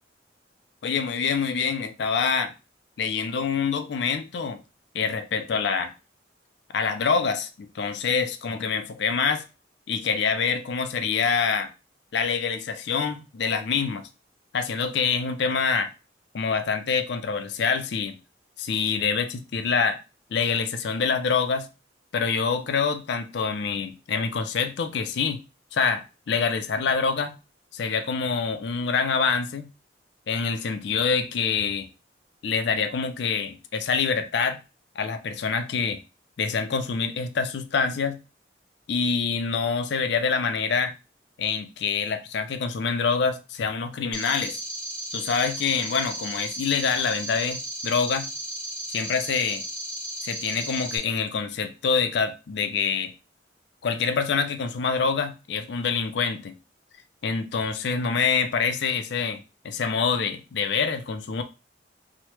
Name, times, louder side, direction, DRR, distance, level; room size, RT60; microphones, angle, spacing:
voice 1, 0.8-2.5 3.0-4.6 4.9-5.9 6.7-9.4 9.9-11.7 12.1-14.1 14.5-15.9 16.3-18.2 18.6-20.0 20.3-21.7 22.1-25.4 25.7-27.4 27.7-29.7 30.3-31.9 32.4-34.6 35.0-36.0 36.4-38.2 38.9-40.9 41.4-44.6 45.1-48.3 48.9-49.6 50.2-53.1 53.8-56.5 57.2-61.4, left 5 dB, 65° left, 0.4 m, -26 dB
sound 1, 44.1-51.0, right 1 dB, 5° left, 0.7 m, -34 dB
3.0 x 2.1 x 3.1 m
head